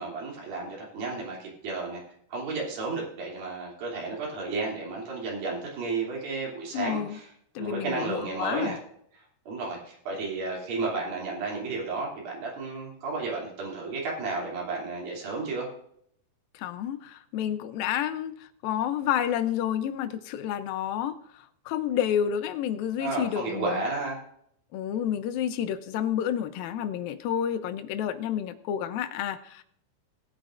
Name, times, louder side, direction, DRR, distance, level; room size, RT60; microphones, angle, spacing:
voice 1, 0.0-2.0 2.3-7.3 7.6-8.8 9.5-15.7 23.0-24.2, right 3 dB, 75° right, -3 dB, 4.7 m, -32 dB
voice 2, 6.7-7.2 7.6-8.8 16.5-23.8 24.7-29.6, left 10 dB, 80° left, 10 dB, 2.5 m, -30 dB
18.0 x 9.0 x 2.5 m, 0.68 s
omnidirectional pair, 4.2 m